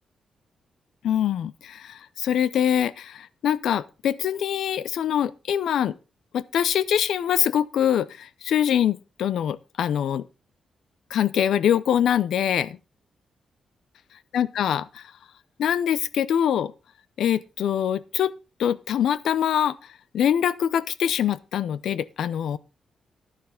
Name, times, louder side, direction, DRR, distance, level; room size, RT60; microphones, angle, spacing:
voice 1, 1.0-5.9 6.3-10.2 11.1-12.8 14.3-15.0 15.6-16.7 17.2-18.3 18.6-19.8 20.1-22.6, left 9 dB, 75° left, 0.6 m, -24 dB
11.0 x 9.7 x 3.8 m
wide cardioid pair, 180°, 0 cm